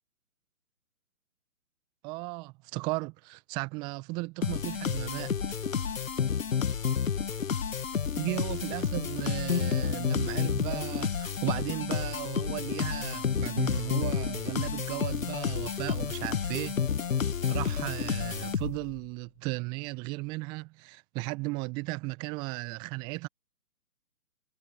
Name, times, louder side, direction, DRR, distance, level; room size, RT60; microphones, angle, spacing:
voice 1, 2.0-5.3 8.2-16.8 17.5-23.3, right 25 dB, 10° right, 0.9 m, -35 dB
sound 1, 4.4-19.0, left 7 dB, 60° left, 1.7 m, -30 dB
figure-of-eight pair, 135°, 45 cm